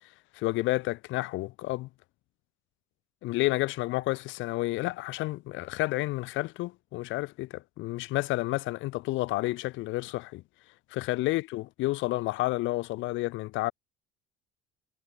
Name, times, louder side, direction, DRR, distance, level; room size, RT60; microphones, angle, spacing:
voice 1, 0.3-1.9 3.2-10.4 10.9-13.7, left 19 dB, 70° left, 7.4 m, -30 dB
cardioid pair, 135°, 21 cm